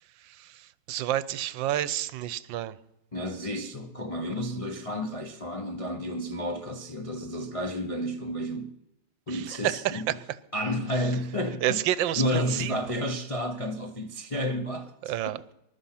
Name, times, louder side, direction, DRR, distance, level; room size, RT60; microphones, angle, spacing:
voice 1, 0.0-2.8 9.3-10.1 11.6-12.8 15.0-15.4, right 12 dB, 75° right, 1.4 m, -30 dB
voice 2, 3.1-8.8 9.3-10.1 10.5-11.8 12.2-15.3, left 1 dB, 30° left, 0.6 m, -31 dB
20.5 x 12.0 x 5.8 m
omnidirectional pair, 2.2 m